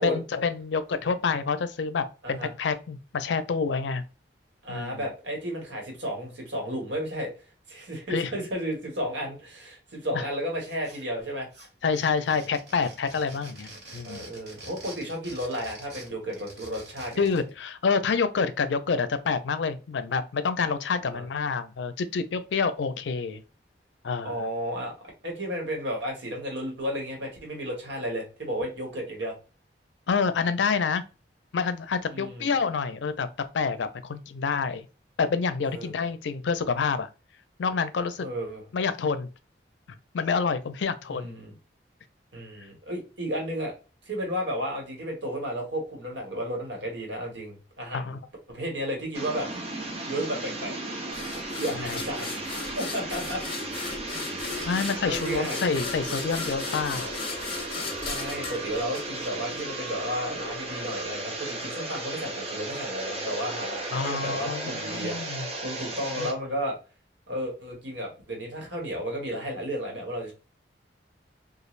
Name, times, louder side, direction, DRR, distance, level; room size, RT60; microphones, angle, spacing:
voice 1, 0.0-4.0 4.7-5.0 8.1-8.3 10.1-10.2 11.8-14.3 17.2-23.4 24.0-24.4 30.1-31.0 31.5-33.3 33.5-34.8 35.2-37.1 37.6-38.3 38.7-39.3 40.1-41.4 47.9-48.2 51.8-52.0 54.6-57.2 63.9-65.5 66.2-66.3, left 5 dB, 80° left, 0.4 m, -28 dB
voice 2, 4.6-7.3 7.7-11.5 14.0-17.2 21.0-21.2 24.2-24.9 25.2-29.3 32.1-32.5 35.7-35.9 38.2-38.6 41.1-41.5 42.3-43.7 44.0-48.1 48.5-49.5 50.1-50.7 51.5-52.4 52.7-53.4 54.3-54.7 55.0-55.6 58.0-66.8 67.3-70.3, equal, 85° right, 1.3 m, -33 dB
sound 1, 10.6-11.3 11.5-17.5, right 2 dB, 65° right, 1.4 m, -46 dB
sound 2, 49.1-66.3, right 2 dB, 35° right, 0.6 m, -35 dB
sound 3, 51.1-59.6, left 4 dB, 30° left, 0.7 m, -37 dB
3.2 x 2.4 x 2.4 m
head